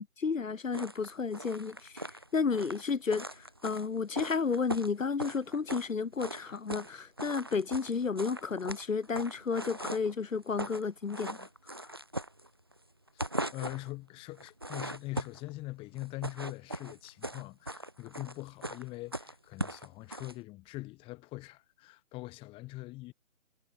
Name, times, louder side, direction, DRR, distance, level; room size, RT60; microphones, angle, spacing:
voice 1, 0.0-11.9, left 5 dB, 65° left, 3.0 m, -32 dB
sound 1, 0.7-5.9 6.2-6.9 7.2-10.1 10.4-10.8 11.1-12.8 13.1-13.9 14.4-15.5 16.0-20.3, right 1 dB, 20° right, 0.6 m, -39 dB
voice 2, 13.1-23.1, left 20 dB, 10° left, 4.8 m, -43 dB
figure-of-eight pair, 160°, 42 cm